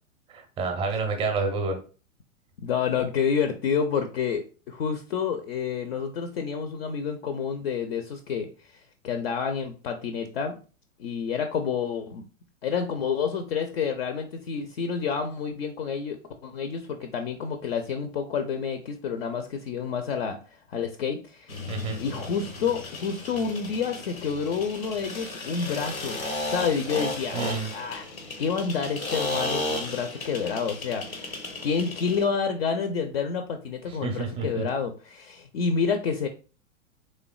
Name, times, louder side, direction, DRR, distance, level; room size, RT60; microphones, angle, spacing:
voice 1, 0.3-1.8 21.7-22.0 27.3-27.7 33.9-34.6, right 4 dB, 15° right, 3 dB, 0.6 m, -29 dB
voice 2, 2.6-10.6 11.0-12.2 12.6-21.7 22.0-26.2 26.5-27.4 27.7-28.1 28.4-31.4 31.6-36.3, left 6 dB, 50° left, 7 dB, 0.5 m, -29 dB
sound 1, 21.5-32.3, left 2 dB, 85° left, 0.8 m, -34 dB
3.4 x 3.1 x 2.3 m, 0.36 s
figure-of-eight pair, 105°, 40 cm